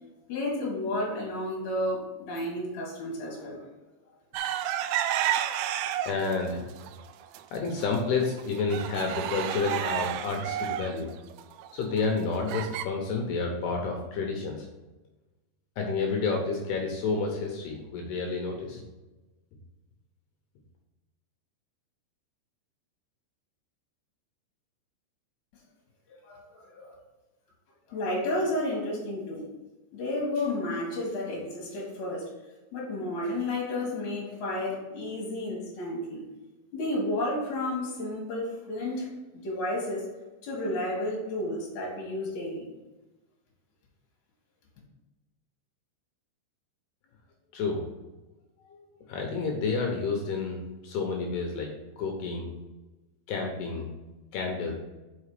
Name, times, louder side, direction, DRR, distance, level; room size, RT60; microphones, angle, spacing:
voice 1, 0.3-3.7 26.2-26.9 27.9-29.4 29.9-32.3 32.7-36.2 36.7-39.1 39.3-40.0 40.4-42.7, left 1 dB, 55° left, -3 dB, 2.4 m, -32 dB
sound 1, 4.3-6.4 6.8-7.4 7.8-7.9 8.2-12.9, right 11 dB, 85° right, 2.8 m, -31 dB
voice 2, 6.1-6.7 7.5-11.1 11.7-14.7 15.8-18.8 47.5-47.9 48.7-51.7 52.0-52.5 53.3-53.9 54.3-54.7, left 4 dB, 75° left, 1 dB, 2.5 m, -30 dB
6.3 x 5.7 x 4.9 m, 1.1 s
omnidirectional pair, 5.6 m